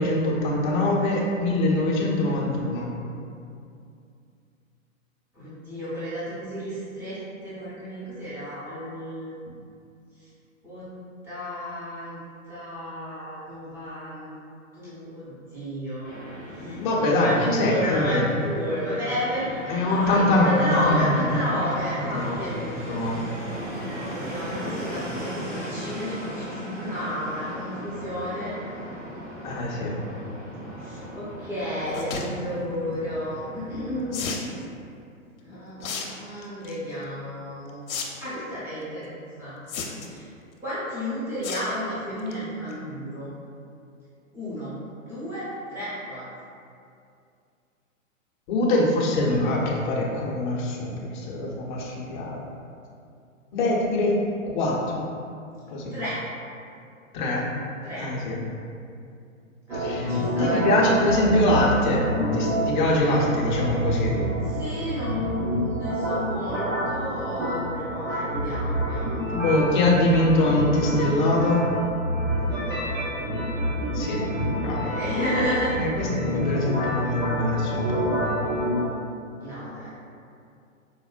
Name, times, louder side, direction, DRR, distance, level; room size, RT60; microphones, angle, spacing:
voice 1, 0.0-2.9 16.6-18.3 19.7-21.2 22.1-23.2 29.4-29.9 48.5-52.4 53.5-54.2 54.4-55.0 55.7-55.9 57.1-57.4 58.0-58.4 59.7-64.2 69.3-71.7 73.9-74.9 75.8-78.2, left 1 dB, 35° left, -2 dB, 0.5 m, -23 dB
voice 2, 5.3-7.2 7.4-9.3 10.2-10.3 10.6-10.9 11.2-12.2 12.5-14.4 14.7-16.1 16.6-22.5 24.2-28.5 30.8-34.3 35.4-37.8 38.2-39.1 39.4-39.6 40.0-40.3 40.6-43.3 44.3-44.7 45.0-46.2 55.9-56.2 57.8-58.1 59.7-60.9 64.4-69.2 72.4-73.1 74.8-75.8 79.4-79.9, equal, 5° right, -12 dB, 0.6 m, -32 dB
Fixed-wing aircraft airplane, 16.0-34.0, equal, 25° right, 0.9 m, -37 dB
sound 1, 31.9-32.3 34.1-34.5 35.8-36.1 36.4-36.8 37.9-38.0 38.3-38.4 39.7-40.2 41.4-41.7 42.1-42.3 42.7-42.8 43.0-43.1, left 5 dB, 80° left, 0.6 m, -32 dB
sound 2, 59.7-78.8, equal, 85° right, 1.0 m, -28 dB
4.3 x 2.1 x 2.3 m, 2.5 s
hypercardioid pair, 130°, 40 cm